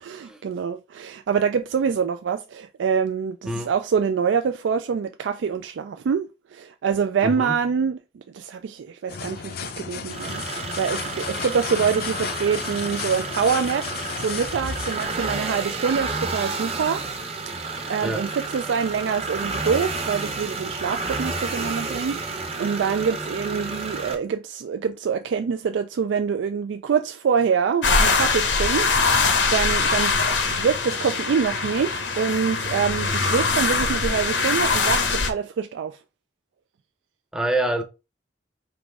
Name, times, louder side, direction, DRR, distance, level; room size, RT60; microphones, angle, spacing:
voice 1, 0.0-13.9 14.2-17.0 17.4-36.0, right 6 dB, 75° right, 0.3 m, -25 dB
voice 2, 7.2-7.6 18.0-18.3 37.3-37.8, right 1 dB, 5° right, 0.6 m, -26 dB
sound 1, 9.1-15.1, left 6 dB, 55° left, 0.5 m, -33 dB
sound 2, 10.1-24.1, right 3 dB, 35° right, 0.9 m, -31 dB
sound 3, 27.8-35.3, left 4 dB, 75° left, 0.9 m, -22 dB
3.7 x 3.0 x 4.7 m
head